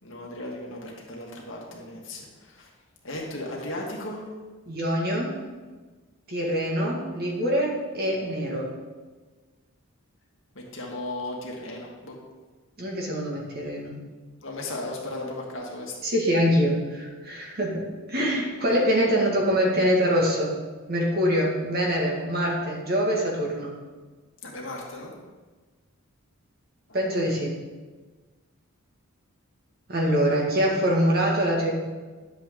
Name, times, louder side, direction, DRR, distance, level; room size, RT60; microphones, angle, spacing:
voice 1, 0.0-2.3 2.6-2.7 3.0-4.2 10.6-12.2 14.4-15.9 24.4-25.1, left 1 dB, 60° left, -2 dB, 1.9 m, -35 dB
voice 2, 4.7-5.3 6.3-8.7 12.8-13.9 16.0-17.8 18.1-20.6 20.9-23.7 26.9-27.5 29.9-31.7, equal, 45° right, -2 dB, 1.9 m, -24 dB
10.5 x 7.4 x 3.8 m, 1.3 s
head